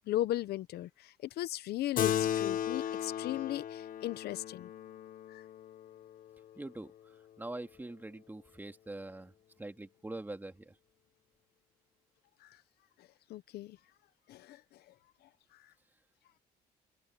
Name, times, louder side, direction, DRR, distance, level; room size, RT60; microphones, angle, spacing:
voice 1, 0.1-4.7 5.3-5.4 12.4-12.5 13.3-13.8 14.3-14.6, left 14 dB, 70° left, 0.9 m, -37 dB
Keyboard (musical), 2.0-6.8, left 10 dB, 55° left, 1.4 m, -36 dB
voice 2, 6.6-9.3 9.6-10.8, right 2 dB, 10° right, 2.5 m, -44 dB
cardioid pair, 110°, 17 cm